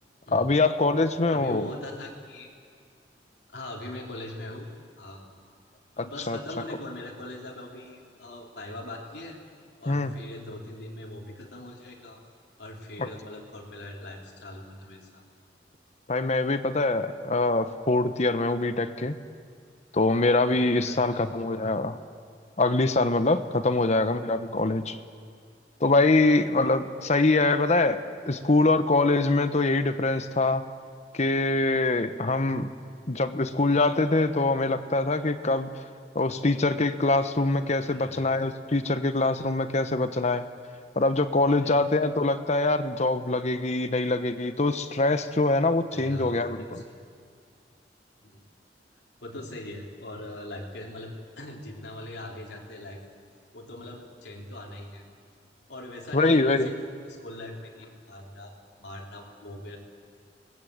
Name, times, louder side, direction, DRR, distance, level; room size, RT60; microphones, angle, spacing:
voice 1, 0.3-1.7 6.0-6.4 9.9-10.2 13.0-13.1 16.1-19.2 19.9-22.0 22.6-25.0 25.8-30.7 31.1-32.7 33.1-35.7 36.1-40.4 41.0-46.8 56.1-56.7, left 2 dB, 40° left, 10 dB, 1.1 m, -24 dB
voice 2, 1.3-2.5 3.5-4.7 5.0-5.2 6.0-9.4 9.8-12.2 12.6-15.2 20.8-21.3 32.8-33.0 37.9-38.2 41.5-41.7 45.9-47.0 48.2-48.5 49.2-53.0 53.5-55.0 55.7-59.8, left 1 dB, 70° left, -1 dB, 3.8 m, -41 dB
25.5 x 20.0 x 8.0 m, 2.1 s
head